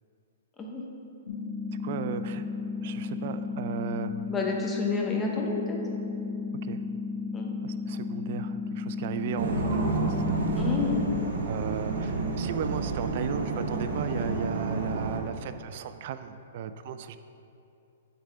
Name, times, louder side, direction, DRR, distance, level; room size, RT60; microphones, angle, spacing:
sound 1, 1.3-11.3, left 4 dB, 80° left, 1.0 m, -34 dB
voice 1, 1.8-2.4 2.8-4.1 6.6-6.8 7.6-10.4 11.5-17.2, right 8 dB, 45° right, 10 dB, 0.3 m, -35 dB
voice 2, 4.3-5.8 7.3-7.5 10.6-11.0, left 3 dB, 15° left, -1 dB, 0.8 m, -30 dB
sound 2, 9.4-15.2, right 3 dB, 80° right, 0.9 m, -29 dB
8.2 x 3.5 x 4.6 m, 2.7 s
hypercardioid pair, 155°, 0 cm